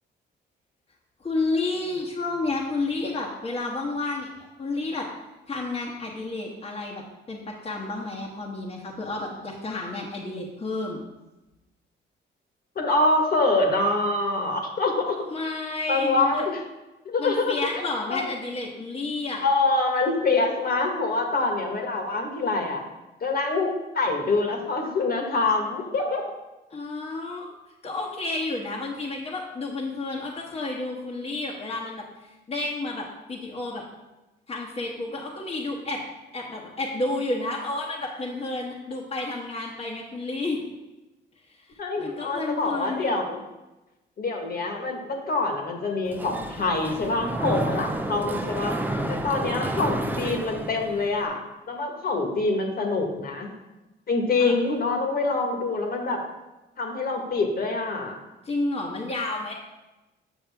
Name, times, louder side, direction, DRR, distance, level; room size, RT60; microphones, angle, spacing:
voice 1, 1.2-5.1 5.5-7.0 7.3-11.0 15.3-16.4 17.2-19.4 26.7-27.5 27.8-32.0 32.5-33.8 34.5-36.0 36.3-40.7 41.7-43.3 54.4-54.5 58.4-59.5, left 2 dB, 30° left, -2 dB, 1.2 m, -31 dB
voice 2, 12.7-15.1 15.9-16.6 17.0-17.6 18.1-18.3 19.4-22.8 23.2-26.2 41.8-43.4 44.2-48.8 49.1-51.4 51.7-53.5 54.1-56.2 56.8-58.1, left 3 dB, 50° left, 2 dB, 1.5 m, -25 dB
Mechanisms, 46.1-51.2, right 1 dB, 10° right, 0.6 m, -30 dB
7.5 x 6.5 x 3.5 m, 1.0 s
cardioid pair, 90°, 20 cm